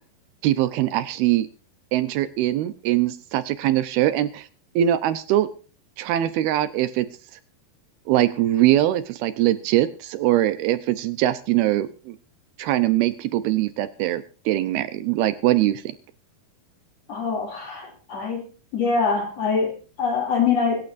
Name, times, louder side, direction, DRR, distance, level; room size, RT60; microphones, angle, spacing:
voice 1, 0.4-1.5 1.9-4.5 4.8-5.5 6.0-7.1 8.1-12.2 12.6-15.8, right 13 dB, 80° right, 12 dB, 2.7 m, -22 dB
voice 2, 17.1-18.4 18.7-20.9, left 5 dB, 45° left, 3 dB, 3.4 m, -24 dB
25.5 x 12.0 x 2.6 m, 0.38 s
omnidirectional pair, 4.6 m